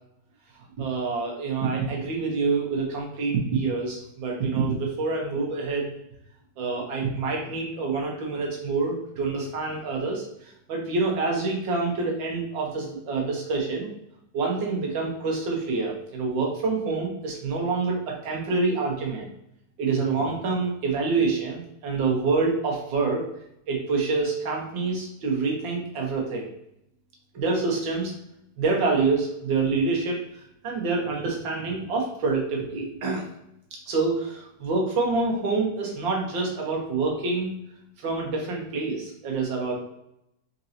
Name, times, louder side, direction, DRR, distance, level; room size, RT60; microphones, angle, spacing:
voice 1, 0.8-5.9 6.6-10.2 10.7-13.9 14.3-19.3 19.8-23.2 23.7-26.5 27.3-28.1 28.6-30.2 30.6-33.2 33.9-37.5 38.0-39.8, right 4 dB, 80° right, -1 dB, 1.9 m, -26 dB
4.5 x 4.0 x 2.8 m, 0.80 s
omnidirectional pair, 2.0 m